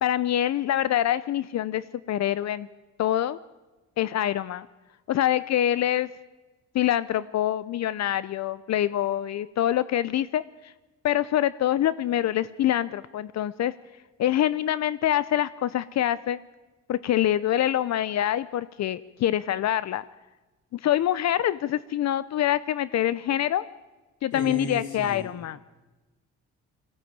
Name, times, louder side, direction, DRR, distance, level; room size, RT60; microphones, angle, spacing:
voice 1, 0.0-2.7 3.0-3.4 4.0-4.7 5.1-6.1 6.7-10.4 11.0-13.7 14.2-16.4 16.9-20.0 20.7-23.6 24.2-25.6, left 12 dB, 60° left, 17 dB, 0.6 m, -25 dB
voice 2, 24.3-25.2, left 1 dB, 75° left, 3 dB, 5.2 m, -34 dB
20.5 x 15.5 x 8.7 m, 1.2 s
cardioid pair, 90°, 30 cm